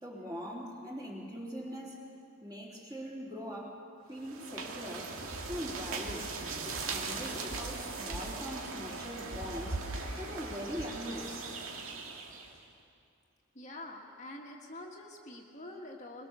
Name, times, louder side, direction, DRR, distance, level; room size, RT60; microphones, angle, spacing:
voice 1, 0.0-2.0 2.4-3.8 4.1-5.2 5.5-6.4 6.6-9.8 10.2-11.5, equal, 20° right, -3 dB, 3.3 m, -42 dB
sound 1, 4.2-12.6, right 3 dB, 80° right, 2.1 m, -39 dB
voice 2, 13.6-16.3, left 1 dB, 35° left, -1 dB, 1.7 m, -46 dB
22.0 x 22.0 x 6.9 m, 2.5 s
head